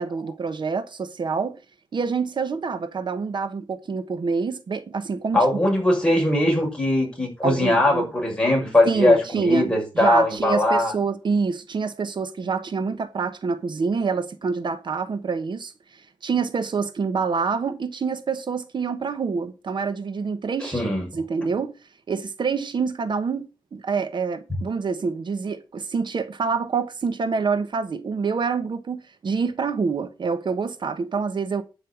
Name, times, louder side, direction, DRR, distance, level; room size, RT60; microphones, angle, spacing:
voice 1, 0.0-1.6 1.9-5.4 7.4-8.1 8.8-21.7 22.1-31.6, right 5 dB, 60° right, 1.2 m, -26 dB
voice 2, 5.3-10.9 20.6-21.1, left 1 dB, 10° left, 6.3 m, -20 dB
11.5 x 5.6 x 7.2 m
wide cardioid pair, 110°, 9 cm